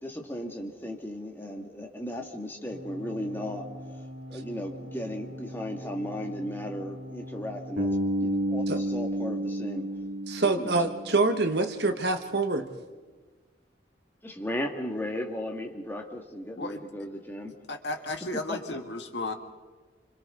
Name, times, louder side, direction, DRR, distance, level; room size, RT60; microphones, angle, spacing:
voice 1, 0.0-3.7 4.3-7.9 8.2-9.9 10.6-10.7 14.2-17.5 18.5-18.6, left 1 dB, 10° left, 2.2 m, -35 dB
sound 1, 2.7-7.8, equal, 35° right, 3.5 m, -42 dB
Bass guitar, 7.8-11.7, right 1 dB, 80° right, 2.8 m, -31 dB
voice 2, 10.3-12.7, right 3 dB, 60° right, 1.5 m, -26 dB
voice 3, 17.7-19.3, left 2 dB, 65° left, 1.8 m, -34 dB
29.0 x 26.0 x 4.0 m
head